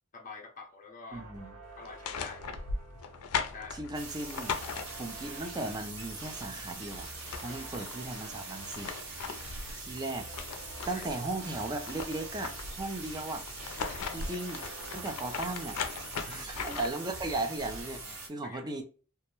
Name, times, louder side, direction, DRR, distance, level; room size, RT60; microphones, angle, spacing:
voice 1, 0.1-1.2 1.8-2.4 3.5-3.9 7.5-7.7 9.1-9.9 10.8-11.0 12.9-13.0 13.8-14.0 16.2-16.5 18.4-18.6, left 4 dB, 35° left, 0.6 m, -48 dB
voice 2, 1.1-1.5 3.7-4.5 5.0-7.1 7.4-8.9 9.8-10.3 10.9-12.5 12.8-13.5 14.1-14.7 14.9-15.8 16.3-18.0 18.3-18.8, right 2 dB, 20° right, 0.4 m, -36 dB
sound 1, 1.1-16.8 17.1-17.5, right 1 dB, 85° right, 0.7 m, -50 dB
sound 2, 1.8-5.3 6.8-6.9 7.1-8.0 8.5-11.1 11.5-12.9 13.5-17.1, left 5 dB, 85° left, 0.4 m, -38 dB
sound 3, 3.9-18.3, right 3 dB, 60° right, 1.0 m, -43 dB
2.3 x 2.1 x 2.9 m
head